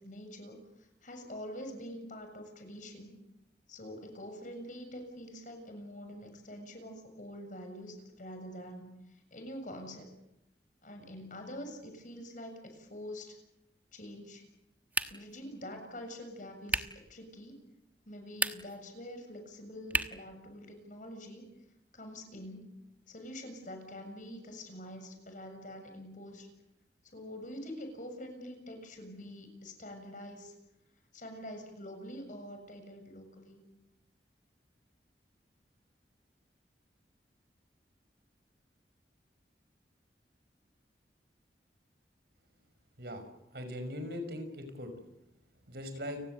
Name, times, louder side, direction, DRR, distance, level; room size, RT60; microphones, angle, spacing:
voice 1, 0.0-3.2 3.7-10.1 10.8-13.3 13.9-14.4 15.1-16.8 17.1-17.6 18.1-21.5 21.9-22.8 23.1-26.5 27.1-30.6 31.1-33.6, equal, 45° left, 5 dB, 7.0 m, -45 dB
sound 1, 14.9-15.4 16.7-17.0 18.3-18.8 19.9-20.3, right 2 dB, 10° right, 1.2 m, -33 dB
voice 2, 43.5-45.1 45.7-46.2, left 1 dB, 60° right, 8 dB, 5.9 m, -40 dB
30.0 x 19.0 x 8.1 m, 0.87 s
head